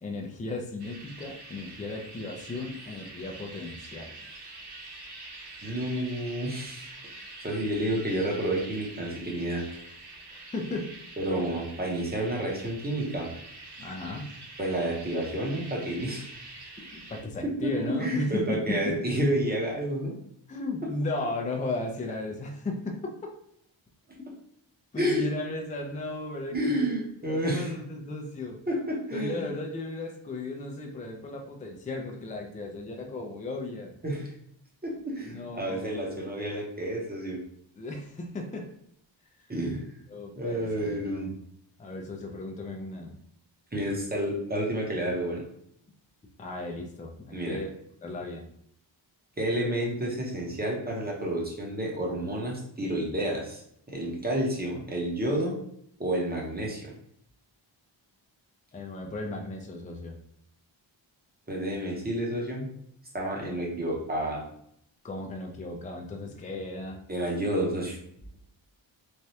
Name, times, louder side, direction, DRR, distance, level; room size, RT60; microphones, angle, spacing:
voice 1, 0.0-4.2 10.3-11.0 13.8-14.3 16.9-19.0 20.5-23.2 24.9-26.9 27.3-28.6 29.1-33.9 35.2-36.2 37.8-38.7 39.4-39.5 40.1-41.0 41.8-43.2 46.4-47.7 48.0-48.5 54.0-54.2 58.7-60.2 65.0-67.0, left 2 dB, 20° left, 2 dB, 0.4 m, -35 dB
sound 1, 0.8-17.2, right 2 dB, 55° right, 0.6 m, -45 dB
voice 2, 5.6-7.2 7.4-9.6 11.2-13.3 14.6-16.3 17.4-20.2 25.0-25.3 26.5-27.7 28.7-29.4 34.0-34.3 34.8-37.4 39.5-39.9 40.4-41.3 43.7-45.4 47.3-47.6 49.4-53.6 53.9-55.5 56.0-56.9 61.5-62.7 63.1-64.4 67.1-68.0, right 1 dB, 20° right, -2 dB, 0.8 m, -30 dB
3.2 x 2.3 x 2.7 m, 0.70 s
wide cardioid pair, 100°, 47 cm